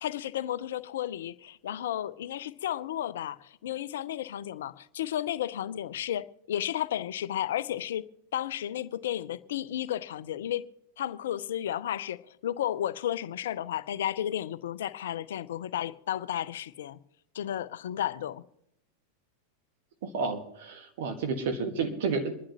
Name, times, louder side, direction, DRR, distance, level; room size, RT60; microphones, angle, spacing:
voice 1, 0.0-10.7 11.0-17.0 17.3-18.4, left 11 dB, 60° left, 0.5 m, -33 dB
voice 2, 20.0-22.3, right 4 dB, 55° right, 1.5 m, -31 dB
26.5 x 11.5 x 3.0 m
figure-of-eight pair, 90°, 0 cm